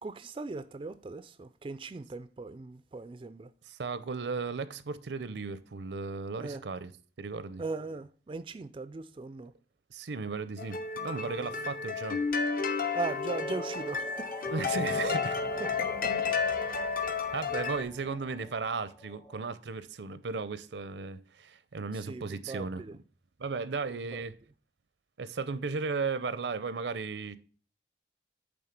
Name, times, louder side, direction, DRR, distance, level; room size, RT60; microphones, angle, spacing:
voice 1, 0.0-3.5 6.4-6.6 7.6-9.5 11.2-11.5 12.9-14.9 15.6-16.3 21.9-23.0 23.9-24.3, right 3 dB, 30° right, 0.3 m, -39 dB
voice 2, 3.7-6.9 7.2-7.6 9.9-12.2 14.5-15.4 16.1-16.2 17.3-22.8 23.4-24.3 25.2-27.4, right 4 dB, 80° right, 0.6 m, -35 dB
sound 1, 10.6-17.8, left 5 dB, 50° left, 0.7 m, -32 dB
sound 2, 13.3-19.5, right 1 dB, 15° left, 0.6 m, -48 dB
sound 3, 14.4-18.8, equal, 70° left, 3.2 m, -47 dB
8.7 x 3.6 x 5.8 m
head